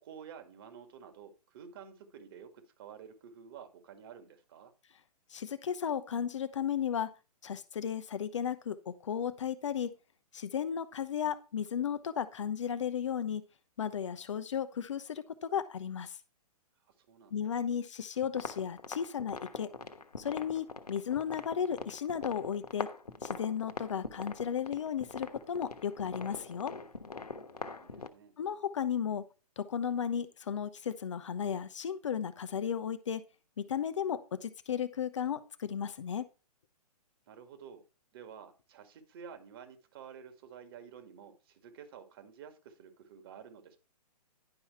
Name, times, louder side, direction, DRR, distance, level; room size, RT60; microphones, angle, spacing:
voice 1, 0.0-4.7 16.8-17.6 27.5-28.4 37.3-37.8 38.1-43.8, right 7 dB, 35° right, 8 dB, 2.0 m, -51 dB
voice 2, 5.3-7.1 7.4-9.9 10.3-13.4 13.8-16.2 17.3-19.7 20.2-22.9 23.2-26.7 28.4-29.2 29.6-33.2 33.6-36.3, left 8 dB, 50° left, 13 dB, 0.8 m, -34 dB
sound 1, 18.2-28.1, left 4 dB, 75° left, 1.2 m, -43 dB
11.0 x 5.6 x 4.4 m, 0.32 s
figure-of-eight pair, 125°, 20 cm